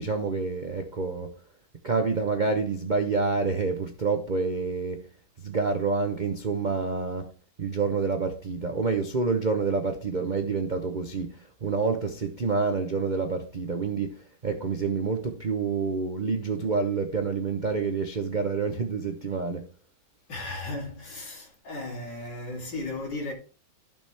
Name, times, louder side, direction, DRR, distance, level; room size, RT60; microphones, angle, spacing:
voice 1, 0.0-1.3 1.8-5.0 5.4-7.3 7.6-19.7, right 4 dB, 50° right, 0.5 m, -28 dB
voice 2, 20.3-23.3, left 2 dB, 60° left, 3.2 m, -35 dB
14.5 x 6.1 x 3.4 m
omnidirectional pair, 2.2 m